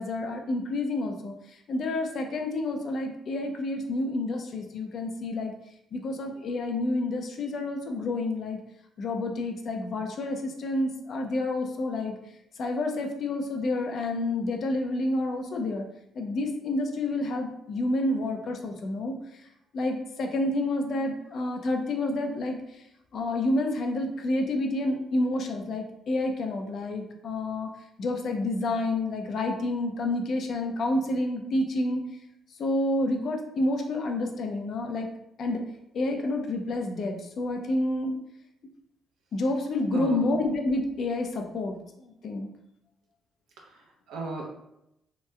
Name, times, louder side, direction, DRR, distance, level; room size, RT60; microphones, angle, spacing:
voice 1, 0.0-1.3 1.7-5.5 5.9-8.6 9.0-12.2 12.6-15.8 16.2-19.1 19.7-22.6 23.1-27.7 28.0-32.0 32.6-35.1 35.4-35.6 35.9-38.1 39.3-41.7 42.0-42.5, left 2 dB, 60° left, 3 dB, 0.5 m, -29 dB
voice 2, 39.9-40.3 43.6-44.6, right 3 dB, 90° right, -1 dB, 0.7 m, -37 dB
3.1 x 2.9 x 2.3 m, 0.83 s
cardioid pair, 90°, 0 cm